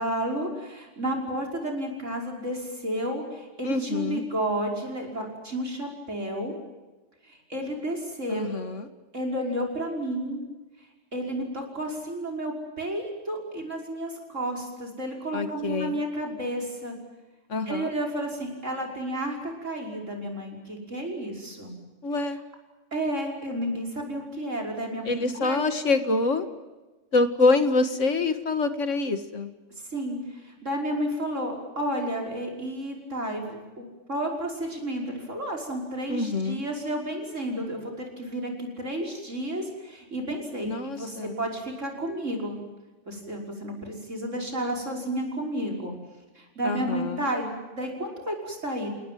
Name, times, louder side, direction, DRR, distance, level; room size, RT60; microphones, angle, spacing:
voice 1, 0.0-6.5 7.2-8.4 9.1-10.4 11.1-17.0 17.7-21.8 22.9-25.6 29.9-42.6 43.1-45.9 46.4-48.9, right 1 dB, 80° right, 1 dB, 6.0 m, -31 dB
voice 2, 3.6-4.2 8.3-8.9 15.3-16.0 17.5-17.9 22.0-22.4 25.1-26.5 27.1-29.5 36.1-36.6 40.6-41.4 46.6-47.2, left 3 dB, 80° left, 9 dB, 2.3 m, -26 dB
28.5 x 19.0 x 9.4 m, 1.2 s
omnidirectional pair, 1.3 m